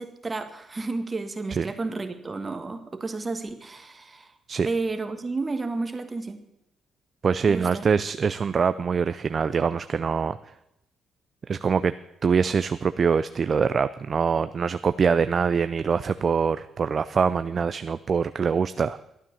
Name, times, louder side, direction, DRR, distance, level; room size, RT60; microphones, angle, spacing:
voice 1, 0.0-4.3 4.6-6.4 7.5-7.8, right 3 dB, 25° right, 7 dB, 1.5 m, -31 dB
voice 2, 7.2-10.4 11.5-11.9 12.2-19.0, right 6 dB, 45° right, 13 dB, 0.4 m, -24 dB
12.0 x 9.0 x 7.0 m, 0.84 s
cardioid pair, 90°, 0 cm